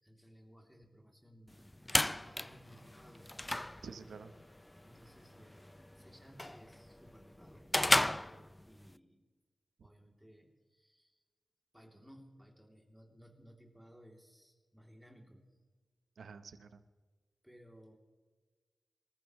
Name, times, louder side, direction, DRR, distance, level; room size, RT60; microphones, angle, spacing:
voice 1, 0.0-1.7 2.0-3.3 4.8-9.2 9.8-11.2 11.7-15.6 17.4-17.9, equal, ahead, 0 dB, 2.9 m, -60 dB
sound 1, 1.5-9.0, left 1 dB, 15° left, 0.4 m, -36 dB
voice 2, 3.8-4.3 16.2-16.8, right 5 dB, 80° right, 10 dB, 0.9 m, -49 dB
27.0 x 14.0 x 3.1 m, 1.4 s
cardioid pair, 55°, 0 cm